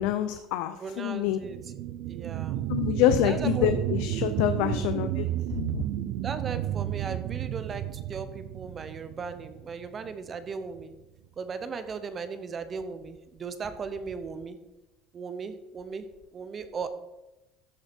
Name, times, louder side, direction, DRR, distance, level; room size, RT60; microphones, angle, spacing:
voice 1, 0.0-1.4 2.7-5.3 5.5-5.8, left 11 dB, 75° left, 9 dB, 0.6 m, -26 dB
voice 2, 0.8-1.6 2.1-2.6 3.2-3.7 4.6-5.0 6.2-10.9 11.4-14.6 15.1-16.0 16.3-16.9, right 5 dB, 25° right, 11 dB, 0.8 m, -37 dB
sound 1, 1.3-10.3 10.8-10.9, right 12 dB, 65° right, 0.6 m, -32 dB
13.5 x 5.7 x 4.4 m, 0.99 s
cardioid pair, 145°, 0 cm